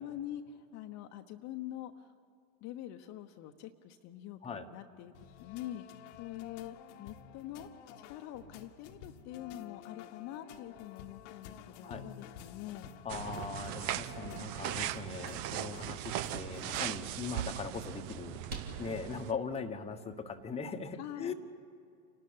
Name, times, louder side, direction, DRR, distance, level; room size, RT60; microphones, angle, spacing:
voice 1, 0.0-2.1 2.6-5.1 5.4-7.7 8.1-12.9 21.0-21.3, left 12 dB, 40° left, 5 dB, 1.0 m, -45 dB
sound 1, 5.1-17.0, left 9 dB, 60° left, 1.3 m, -52 dB
voice 2, 13.0-18.4 18.8-21.3, left 5 dB, 15° left, 5 dB, 1.2 m, -40 dB
sound 2, 13.1-19.3, right 12 dB, 45° right, 0.8 m, -39 dB
sound 3, 19.3-20.7, right 3 dB, 80° right, 2.9 m, -52 dB
28.5 x 12.5 x 8.7 m, 2.4 s
hypercardioid pair, 95°, 42 cm